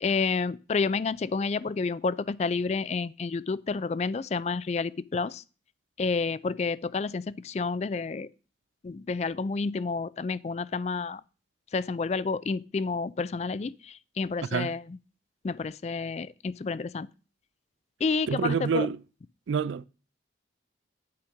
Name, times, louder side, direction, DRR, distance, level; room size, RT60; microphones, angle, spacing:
voice 1, 0.0-5.4 6.0-8.3 8.8-11.2 11.7-15.0 15.4-17.1 18.0-18.9, left 4 dB, 35° left, 0.3 m, -30 dB
voice 2, 18.3-19.0 19.5-19.9, right 6 dB, 80° right, 0.4 m, -27 dB
8.6 x 5.1 x 5.8 m
head